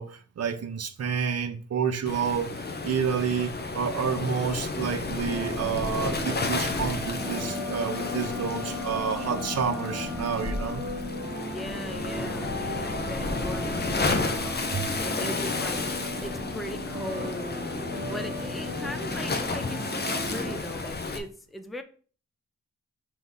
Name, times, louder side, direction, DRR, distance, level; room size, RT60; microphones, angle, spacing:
voice 1, 0.0-10.8 14.7-14.9, right 6 dB, 55° right, 0.8 m, -29 dB
Waves surf, 2.1-21.2, left 3 dB, 35° left, 0.7 m, -32 dB
sound 1, 5.3-20.6, right 1 dB, 30° right, 1.1 m, -37 dB
Wind instrument woodwind instrument, 7.2-11.2, left 10 dB, 75° left, 0.6 m, -39 dB
voice 2, 11.4-17.7 18.1-21.8, left 1 dB, ahead, 0.4 m, -39 dB
6.0 x 3.0 x 5.4 m
wide cardioid pair, 165°, 30 cm